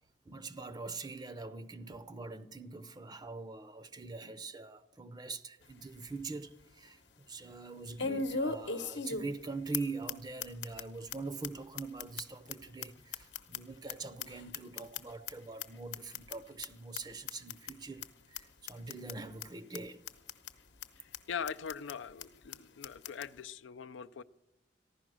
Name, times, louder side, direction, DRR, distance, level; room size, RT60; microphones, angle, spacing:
voice 1, 0.3-7.0 7.3-20.0, right 3 dB, 25° right, 0.5 m, -43 dB
sound 1, 5.6-5.7 6.2-6.3 8.0-9.4 9.7-9.8 10.1-10.2 10.4-10.8 11.1-11.2 11.4-11.5 11.8-13.9 14.2-15.3 15.6-15.7 15.9-16.3 16.6-16.7 16.9-17.0 17.3-17.7 18.0-18.1 18.3-18.4 18.7-19.1 19.4-19.5 19.7-19.8 20.1-20.5 20.8-20.9 21.1-21.2 21.5-21.9 22.2-22.3 22.5-22.6 22.8-23.3, left 4 dB, 70° left, 0.9 m, -37 dB
voice 2, 21.3-24.2, left 7 dB, 85° left, 0.5 m, -41 dB
15.0 x 11.5 x 6.2 m
head